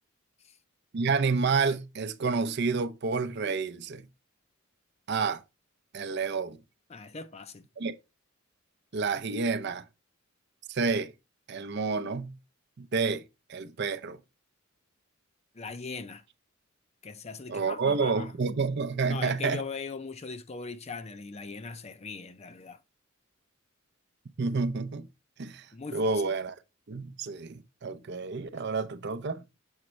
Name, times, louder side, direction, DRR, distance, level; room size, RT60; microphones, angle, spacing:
voice 1, 0.9-4.0 5.1-5.4 5.9-6.6 7.8-7.9 8.9-9.8 10.7-11.1 11.5-12.4 12.8-13.2 13.5-14.2 17.5-19.6 24.4-25.1 25.4-26.6 26.9-29.4, right 4 dB, 55° right, 0.6 m, -29 dB
voice 2, 6.9-7.6 15.5-16.2 17.0-18.3 19.1-22.8 25.7-26.2, left 4 dB, 30° left, 0.5 m, -40 dB
7.2 x 5.1 x 3.1 m
head